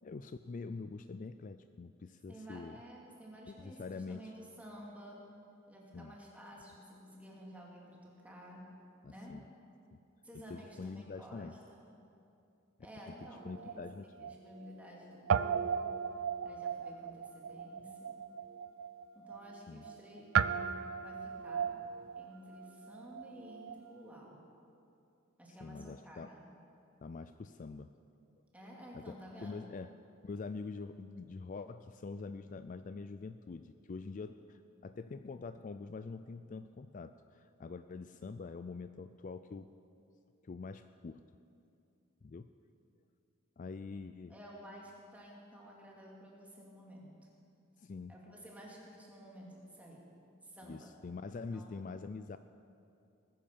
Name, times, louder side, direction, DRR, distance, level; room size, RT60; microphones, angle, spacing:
voice 1, 0.0-2.8 3.5-4.3 5.9-6.1 9.0-9.4 10.5-11.6 13.4-14.3 19.7-19.8 25.6-26.3 27.0-27.9 28.9-29.9 30.2-39.7 40.4-41.2 42.2-42.5 43.6-44.3 47.8-48.1 50.7-52.4, left 4 dB, 40° left, 11 dB, 0.4 m, -45 dB
voice 2, 2.3-5.2 5.7-8.7 9.1-9.4 10.2-11.9 12.8-13.9 14.2-16.0 16.4-18.2 19.1-21.8 22.1-24.4 25.4-26.5 28.5-29.7 43.9-44.0 44.3-47.3 48.1-50.1 50.4-50.9 51.5-51.8, equal, 5° right, -3 dB, 2.8 m, -52 dB
Guitar, 13.2-15.0 15.3-23.9, right 7 dB, 80° right, 0.5 m, -37 dB
19.5 x 10.0 x 7.0 m, 2.6 s
head